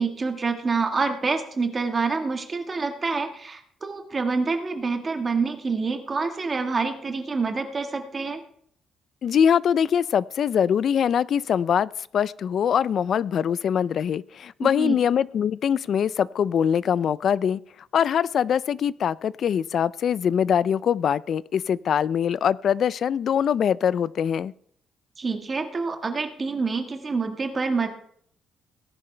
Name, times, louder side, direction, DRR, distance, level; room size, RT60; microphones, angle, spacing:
voice 1, 0.0-8.4 14.6-15.0 25.2-27.9, right 4 dB, 30° right, 5 dB, 1.5 m, -27 dB
voice 2, 9.2-17.6 17.9-24.5, left 8 dB, 55° left, 20 dB, 0.4 m, -23 dB
18.0 x 10.5 x 3.3 m, 0.64 s
cardioid pair, 125°, 0 cm